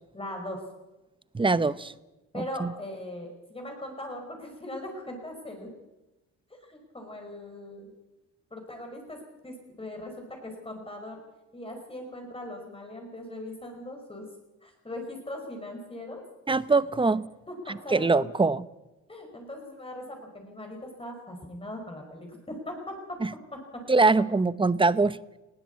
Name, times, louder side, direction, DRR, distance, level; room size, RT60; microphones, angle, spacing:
voice 1, 0.1-0.6 2.3-5.7 6.6-7.9 8.5-11.2 11.5-14.3 14.6-16.2 17.5-18.3 19.1-23.0 23.5-23.6, left 1 dB, 20° left, 2 dB, 5.0 m, -40 dB
voice 2, 1.3-1.9 2.3-2.7 16.5-17.3 17.7-18.6 23.2-23.3 23.9-25.2, right 3 dB, 15° right, 16 dB, 0.8 m, -23 dB
19.5 x 16.5 x 8.4 m, 1.0 s
cardioid pair, 90°, 30 cm